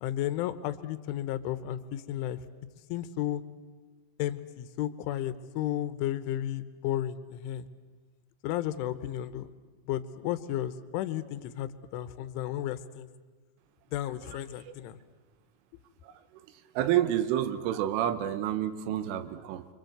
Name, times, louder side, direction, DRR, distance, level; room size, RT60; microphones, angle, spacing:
voice 1, 0.0-2.4 2.9-3.4 4.2-7.7 8.4-9.5 9.9-13.1 13.9-15.0, left 12 dB, 80° left, 13 dB, 3.3 m, -33 dB
voice 2, 16.0-16.5 16.8-19.7, right 11 dB, 80° right, 12 dB, 3.7 m, -29 dB
26.5 x 24.5 x 7.9 m, 1.4 s
omnidirectional pair, 5.6 m